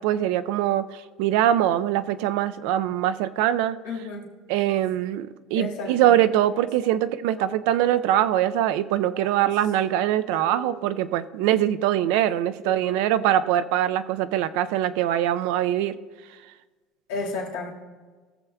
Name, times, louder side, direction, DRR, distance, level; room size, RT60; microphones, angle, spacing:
voice 1, 0.0-3.8 4.5-15.9, right 12 dB, 80° right, 12 dB, 0.4 m, -23 dB
voice 2, 3.8-4.3 5.5-6.1 6.8-7.6 9.1-9.5 10.3-11.2 12.6-13.3 17.1-17.7, left 3 dB, 85° left, -2 dB, 1.8 m, -35 dB
17.0 x 7.1 x 2.3 m, 1.3 s
supercardioid pair, 110°, 0 cm